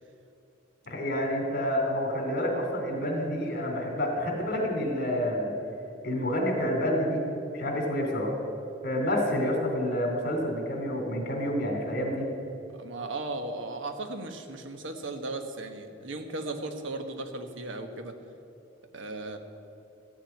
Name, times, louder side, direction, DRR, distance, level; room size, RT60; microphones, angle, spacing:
voice 1, 0.9-5.5 6.0-7.2 7.5-8.4 8.8-12.2, equal, 50° left, 2 dB, 2.9 m, -28 dB
voice 2, 12.8-18.2 18.9-19.4, right 2 dB, 75° right, 6 dB, 1.3 m, -36 dB
13.5 x 7.5 x 9.3 m, 2.9 s
head